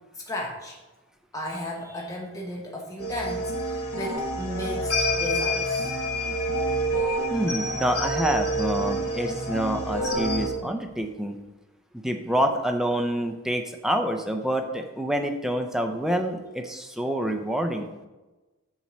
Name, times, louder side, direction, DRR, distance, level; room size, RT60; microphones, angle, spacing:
voice 1, 0.2-0.8 1.3-5.9, left 1 dB, 15° left, -2 dB, 0.8 m, -34 dB
sound 1, 3.0-10.5, equal, 85° left, 1.5 m, -27 dB
voice 2, 7.3-11.4 11.9-17.9, equal, ahead, 5 dB, 0.4 m, -27 dB
7.2 x 4.2 x 6.0 m, 1.1 s
head